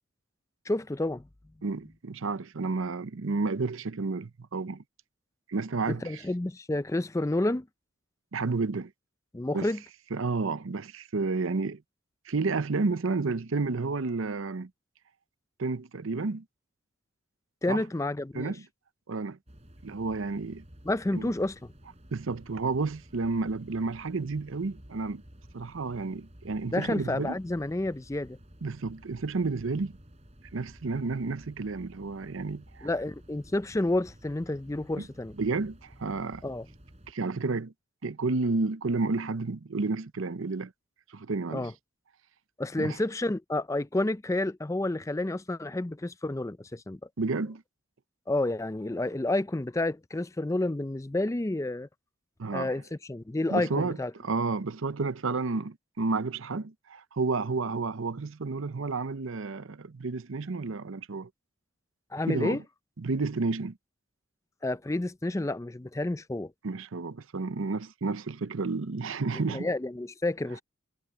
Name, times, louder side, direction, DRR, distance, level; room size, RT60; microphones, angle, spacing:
voice 1, 0.7-1.3 5.9-7.7 9.3-9.8 17.6-18.5 20.9-21.6 26.7-28.4 32.8-35.3 36.4-36.7 41.5-41.7 42.6-47.0 48.3-51.9 52.5-54.1 62.1-62.6 64.6-66.5 69.5-70.6, left 2 dB, 15° left, 0.4 m, -30 dB
voice 2, 1.6-4.8 5.5-6.2 8.3-8.9 9.5-9.7 10.1-11.8 12.3-14.7 15.6-16.4 17.7-17.8 18.3-18.7 19.1-19.4 19.8-20.6 21.1-21.3 22.1-25.2 25.5-27.4 28.6-30.0 30.5-32.9 35.0-35.1 35.4-36.4 37.1-37.7 38.0-40.7 41.1-41.7 42.8-43.0 47.2-47.6 52.4-52.7 53.5-61.3 62.3-62.6 63.0-63.8 66.6-69.7, right 3 dB, 70° right, 0.7 m, -31 dB
sound 1, 19.5-37.1, equal, 30° right, 4.1 m, -53 dB
head